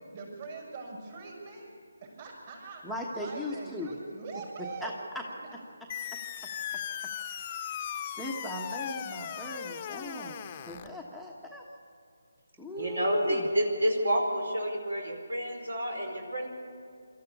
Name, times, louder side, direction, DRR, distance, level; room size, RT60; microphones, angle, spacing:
voice 1, 0.1-1.7 2.0-2.8 3.1-4.9 5.4-5.6, right 4 dB, 40° right, -1 dB, 6.7 m, -42 dB
voice 2, 2.8-3.9 4.6-5.2 7.3-7.6 8.2-11.6 12.6-13.5, left 1 dB, ahead, -2 dB, 1.2 m, -38 dB
sound 1, 5.9-10.9, left 9 dB, 25° left, 1.0 m, -38 dB
voice 3, 12.7-16.5, equal, 75° right, 3 dB, 4.6 m, -29 dB
25.5 x 14.0 x 8.4 m, 2.3 s
figure-of-eight pair, 150°, 0 cm